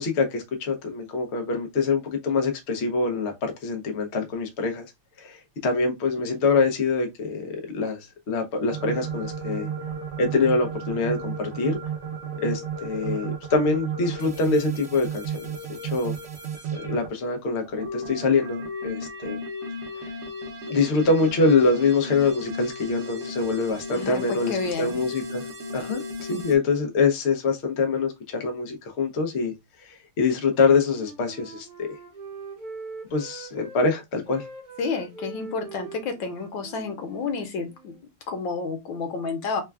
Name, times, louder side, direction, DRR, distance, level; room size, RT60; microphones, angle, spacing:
voice 1, 0.0-4.9 5.2-9.7 10.2-11.8 12.4-15.6 15.8-16.1 16.7-19.4 20.7-25.4 25.7-26.0 26.3-29.5 29.9-31.9 33.1-34.4, left 4 dB, 90° left, 0.5 m, -24 dB
sound 1, 8.7-17.1 17.6-26.6, right 3 dB, 80° right, 0.6 m, -34 dB
voice 2, 23.9-25.0 26.3-26.4 34.8-37.9 38.3-39.6, left 4 dB, 65° left, 1.5 m, -30 dB
Wind instrument woodwind instrument, 30.4-33.8 34.1-38.0, right 3 dB, 35° right, 0.8 m, -42 dB
3.6 x 2.3 x 3.3 m
omnidirectional pair, 2.3 m